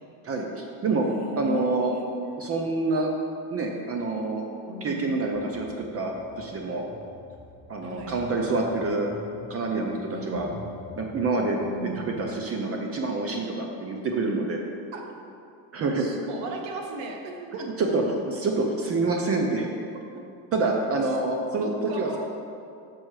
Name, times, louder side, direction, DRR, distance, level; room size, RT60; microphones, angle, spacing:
voice 1, 0.2-1.1 1.4-1.9 2.4-3.1 3.5-4.4 4.8-6.8 7.7-9.1 9.5-10.5 11.0-11.6 12.0-14.6 15.7-16.1 17.6-19.7 20.5-22.2, right 3 dB, 30° right, 1 dB, 0.5 m, -27 dB
voice 2, 1.0-2.3 4.7-5.2 7.8-8.2 10.1-10.6 11.6-12.1 14.9-15.0 16.0-17.7 21.6-22.2, right 1 dB, 90° right, 2 dB, 1.2 m, -36 dB
sound 1, 5.4-12.2, left 2 dB, 20° left, 0.8 m, -47 dB
6.2 x 5.4 x 4.7 m, 2.5 s
cardioid pair, 135°, 46 cm